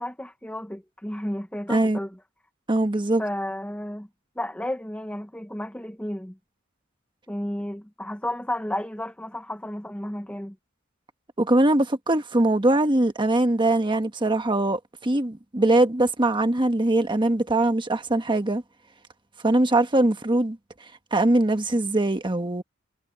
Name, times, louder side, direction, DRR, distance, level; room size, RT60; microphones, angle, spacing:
voice 1, 0.0-2.2 3.2-4.1 4.4-6.4 7.3-10.6, left 1 dB, 5° left, 1.0 m, -32 dB
voice 2, 1.7-2.0 2.7-3.2 11.4-18.6 19.4-22.6, right 2 dB, 25° right, 1.3 m, -22 dB
head